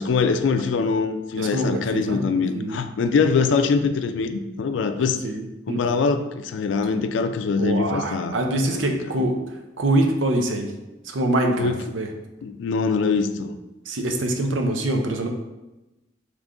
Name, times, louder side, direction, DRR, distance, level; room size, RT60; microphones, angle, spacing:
voice 1, 0.0-5.2 5.7-8.4 8.6-8.9 11.6-11.8 12.4-13.6, left 4 dB, 75° left, 9 dB, 0.3 m, -23 dB
voice 2, 1.4-2.8 5.2-5.8 7.5-9.3 9.8-10.7 11.0-12.1 13.9-15.3, right 1 dB, 85° right, 4 dB, 0.6 m, -24 dB
3.5 x 3.1 x 3.8 m, 1.0 s
head